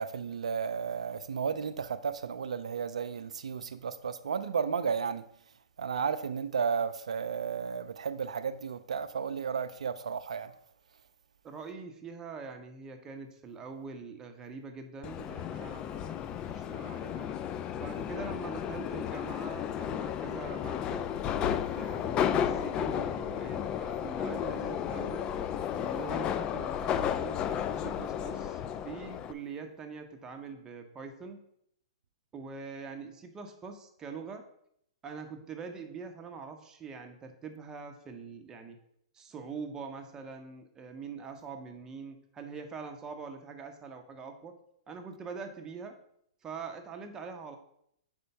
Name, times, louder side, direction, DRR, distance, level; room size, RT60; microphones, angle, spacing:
voice 1, 0.0-5.2 5.8-10.5, right 6 dB, 80° right, 0.4 m, -33 dB
voice 2, 11.4-17.3 17.8-21.0 21.8-25.3 25.7-31.4 32.3-34.5 35.0-38.8 39.1-44.6 44.9-46.0 46.4-47.6, right 5 dB, 20° right, 0.8 m, -43 dB
Subway metro underground, 15.0-29.3, left 9 dB, 25° left, 0.3 m, -33 dB
5.2 x 4.4 x 5.6 m
hypercardioid pair, 130°, 3 cm